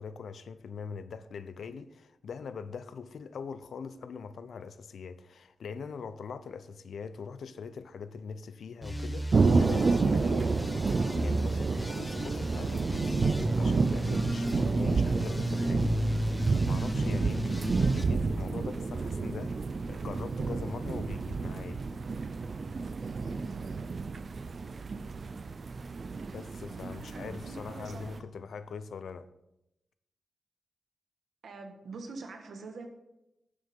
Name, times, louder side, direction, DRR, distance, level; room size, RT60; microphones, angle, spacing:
voice 1, 0.0-15.9 16.7-21.8 26.3-29.3, left 5 dB, 90° left, 0.7 m, -42 dB
sound 1, 8.8-18.0, equal, 10° left, 1.0 m, -33 dB
sound 2, 9.3-28.2, right 4 dB, 50° right, 0.5 m, -30 dB
voice 2, 27.0-28.2 31.4-32.9, right 3 dB, 85° right, 1.7 m, -44 dB
11.5 x 6.6 x 5.4 m
wide cardioid pair, 135°, 0 cm